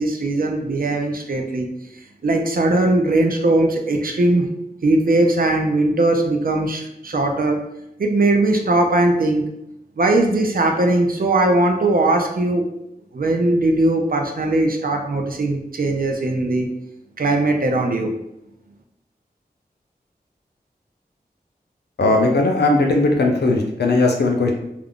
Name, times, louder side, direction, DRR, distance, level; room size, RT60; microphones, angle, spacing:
voice 1, 0.0-1.7 2.2-4.5 4.8-7.6 8.0-9.4 10.0-12.6 13.1-16.7 17.2-18.1, right 2 dB, 60° right, 3 dB, 0.5 m, -19 dB
voice 2, 22.0-24.5, left 2 dB, 85° left, 2 dB, 0.5 m, -18 dB
2.4 x 2.3 x 3.5 m, 0.82 s
wide cardioid pair, 45°, 17 cm